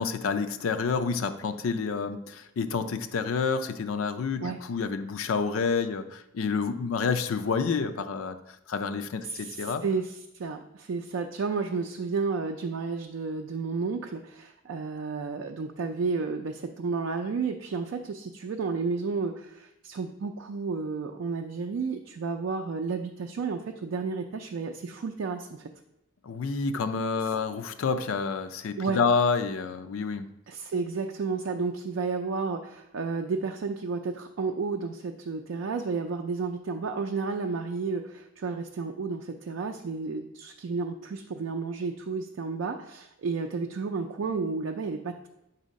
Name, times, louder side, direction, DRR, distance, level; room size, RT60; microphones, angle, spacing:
voice 1, 0.0-8.4 8.7-9.8 26.2-30.3, left 5 dB, 85° left, 9 dB, 0.4 m, -28 dB
voice 2, 9.2-25.7 28.8-29.0 30.5-45.3, right 4 dB, 65° right, 4 dB, 0.4 m, -32 dB
7.1 x 2.7 x 5.1 m, 0.86 s
head